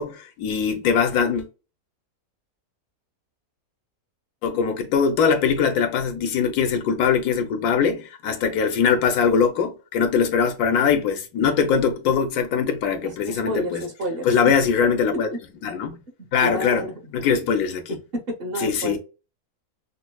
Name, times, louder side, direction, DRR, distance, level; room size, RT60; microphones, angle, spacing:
voice 1, 0.0-1.5 4.4-13.8 14.2-15.3 15.6-16.0 16.3-16.9 17.1-17.9 18.6-19.0, left 6 dB, 90° left, 1.2 m, -21 dB
voice 2, 13.0-14.5 15.3-15.4 16.4-17.0 17.9-19.0, right 1 dB, 45° right, 1.0 m, -30 dB
5.3 x 2.1 x 2.2 m
omnidirectional pair, 1.6 m